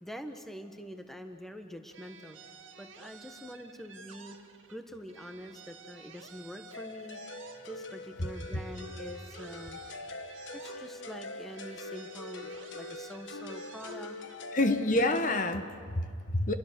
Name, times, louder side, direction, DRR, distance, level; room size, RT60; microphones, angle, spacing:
voice 1, 0.0-2.4 2.8-4.4 4.7-9.8 10.5-14.2, equal, ahead, 6 dB, 1.2 m, -45 dB
sound 1, 1.9-4.8 5.1-8.0 8.3-11.2 11.5-14.4, right 5 dB, 70° right, 2.2 m, -52 dB
sound 2, 6.7-15.5, left 2 dB, 65° left, 1.1 m, -43 dB
voice 2, 14.5-16.5, left 2 dB, 40° left, 8 dB, 1.1 m, -28 dB
29.0 x 22.5 x 6.8 m, 2.2 s
head